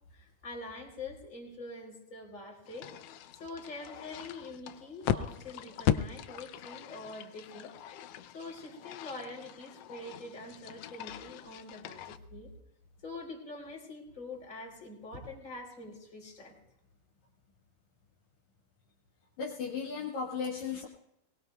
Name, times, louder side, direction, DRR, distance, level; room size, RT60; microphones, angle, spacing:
voice 1, 0.1-2.9 3.3-7.7 8.3-12.5 13.0-16.6, left 2 dB, 25° left, -1 dB, 3.9 m, -45 dB
sound 1, 2.6-12.2, left 10 dB, 90° left, 1.3 m, -38 dB
voice 2, 19.4-20.9, left 5 dB, 70° left, -1 dB, 3.0 m, -35 dB
23.0 x 19.0 x 2.3 m, 0.84 s
omnidirectional pair, 3.5 m